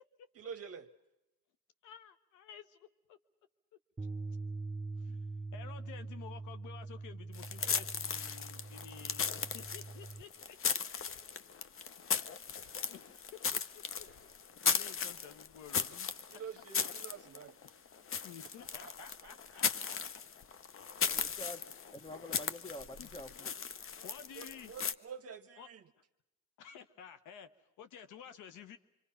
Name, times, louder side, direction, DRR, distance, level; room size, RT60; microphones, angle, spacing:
voice 1, 0.4-0.9 16.3-17.6 18.8-19.3 24.4-25.8, right 7 dB, 50° right, 7 dB, 0.9 m, -47 dB
voice 2, 1.8-3.2 5.0-10.6 12.2-12.3 12.9-13.2 13.5-13.6 14.0-14.1 14.6-16.4 18.2-20.0 23.0-23.1 23.4-23.5 24.0-24.7 25.6-25.7 26.6-28.8, left 8 dB, 90° left, 10 dB, 1.0 m, -52 dB
Bass guitar, 4.0-10.2, right 3 dB, 15° right, 1.0 m, -43 dB
sound 1, 7.3-24.9, left 6 dB, 45° left, 0.8 m, -37 dB
sound 2, 9.4-14.9, left 1 dB, 65° left, 6.6 m, -67 dB
voice 3, 21.1-21.6 21.9-23.5, left 1 dB, 15° left, 13 dB, 1.0 m, -47 dB
25.5 x 25.5 x 5.6 m, 0.95 s
cardioid pair, 90°, 30 cm